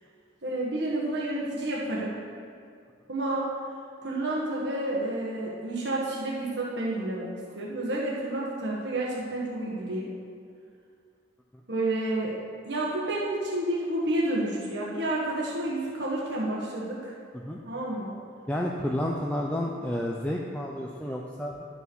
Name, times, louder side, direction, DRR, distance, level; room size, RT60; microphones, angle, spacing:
voice 1, 0.4-2.2 3.1-3.4 4.0-10.1 11.7-12.3 12.6-17.1 17.6-18.2, right 1 dB, 60° right, -5 dB, 1.6 m, -30 dB
voice 2, 18.5-21.7, left 1 dB, 5° left, -2 dB, 0.5 m, -30 dB
11.5 x 5.6 x 6.2 m, 2.3 s
head